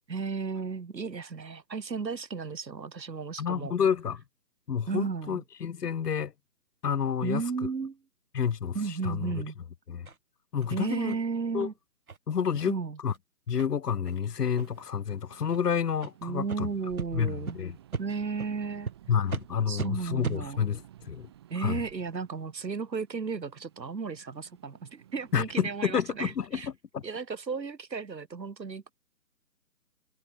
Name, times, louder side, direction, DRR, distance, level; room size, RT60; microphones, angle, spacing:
voice 1, 0.1-3.7 4.9-5.4 7.2-8.0 8.7-9.6 10.7-11.7 12.7-13.0 16.2-17.6 18.0-18.9 19.7-20.7 21.5-26.7 27.0-28.9, right 5 dB, 90° right, 2.6 m, -34 dB
voice 2, 3.4-4.2 4.7-6.3 6.8-7.4 8.3-9.4 9.9-10.1 10.5-11.1 11.5-11.7 12.3-12.7 13.0-13.1 13.5-16.7 17.1-17.8 19.1-21.3 21.6-21.8 25.3-27.0, left 7 dB, 70° left, 0.9 m, -29 dB
sound 1, 10.0-10.2 10.6-10.7 11.1-11.2 11.6-11.7 12.1-12.2 12.6-12.7 13.0-13.2 13.6-13.7 14.1-14.2 14.5-14.9 15.5-15.6 16.0-16.1 16.5-16.6 17.0-17.1 17.5-17.6 17.9-18.0 18.4-18.5 18.8-18.9 19.3-19.4 19.8-19.9 20.2-20.4, right 5 dB, 60° right, 3.2 m, -36 dB
sound 2, 14.3-25.8, right 12 dB, 15° right, 3.7 m, -53 dB
hypercardioid pair, 175°, 49 cm